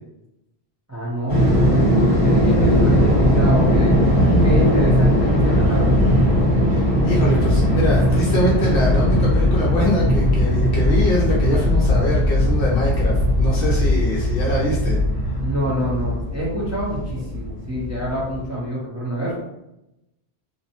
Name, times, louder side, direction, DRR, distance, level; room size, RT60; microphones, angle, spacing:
voice 1, 0.9-3.9 4.4-6.0 15.4-19.4, equal, 20° right, -8 dB, 0.6 m, -26 dB
sound 1, 1.3-18.4, equal, 40° right, 1.2 m, -18 dB
voice 2, 6.7-15.0, equal, 65° left, -4 dB, 0.7 m, -24 dB
2.6 x 2.1 x 2.8 m, 0.90 s
omnidirectional pair, 1.1 m